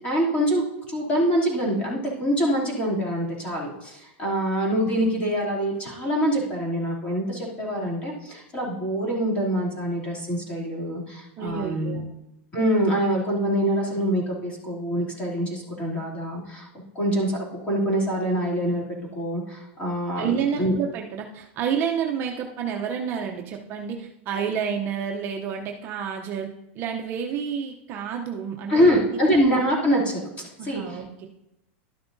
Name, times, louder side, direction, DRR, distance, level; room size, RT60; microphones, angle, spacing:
voice 1, 0.0-12.0 12.5-16.7 16.9-18.8 19.1-20.7 28.7-30.2 30.6-31.0, equal, 20° left, -4 dB, 2.7 m, -25 dB
voice 2, 11.4-12.1 20.2-26.5 26.7-28.9 30.6-31.3, right 7 dB, 35° right, 2 dB, 0.7 m, -29 dB
12.0 x 6.8 x 2.6 m, 0.88 s
supercardioid pair, 150°, 7 cm